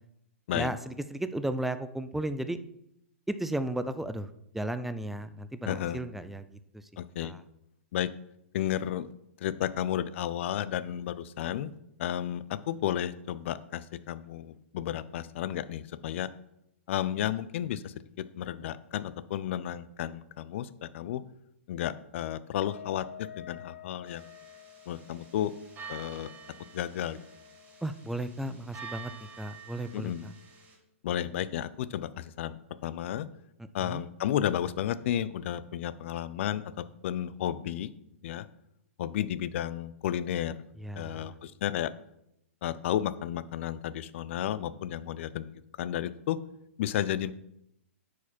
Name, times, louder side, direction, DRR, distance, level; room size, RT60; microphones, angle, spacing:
voice 1, 0.5-2.6 3.3-6.5 6.7-6.8 7.2-7.4 27.8-29.1 29.4-30.3 33.6-34.0 40.8-41.3, right 1 dB, 5° right, 11 dB, 0.4 m, -34 dB
voice 2, 5.7-6.0 7.0-7.3 7.9-8.1 8.5-9.1 9.4-11.7 12.0-16.3 16.9-21.2 21.7-24.2 24.9-25.5 25.9-26.3 26.7-27.2 29.9-30.2 31.0-33.3 33.7-37.9 38.2-38.5 39.0-40.5 41.0-41.9 42.6-46.4 46.8-47.3, left 11 dB, 60° left, 16 dB, 0.5 m, -32 dB
Wind instrument woodwind instrument, 22.5-28.2, left 9 dB, 90° left, 0.8 m, -50 dB
sound 1, 24.1-30.8, right 5 dB, 20° right, 2.5 m, -48 dB
9.9 x 5.0 x 4.3 m, 0.80 s
hypercardioid pair, 130°, 8 cm